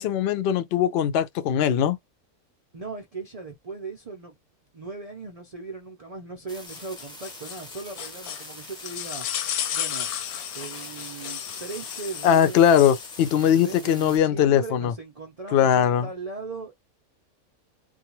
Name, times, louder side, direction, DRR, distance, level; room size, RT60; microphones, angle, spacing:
voice 1, 0.0-2.0 12.2-14.9 15.5-16.1, left 9 dB, 70° left, 0.6 m, -20 dB
voice 2, 2.7-4.3 4.7-9.3 9.7-10.1 10.5-12.7 13.4-16.7, right 4 dB, 65° right, 0.3 m, -38 dB
sound 1, 6.5-14.2, equal, 5° left, 0.4 m, -44 dB
sound 2, 6.7-13.3, left 10 dB, 90° left, 1.1 m, -34 dB
2.5 x 2.3 x 2.9 m
omnidirectional pair, 1.5 m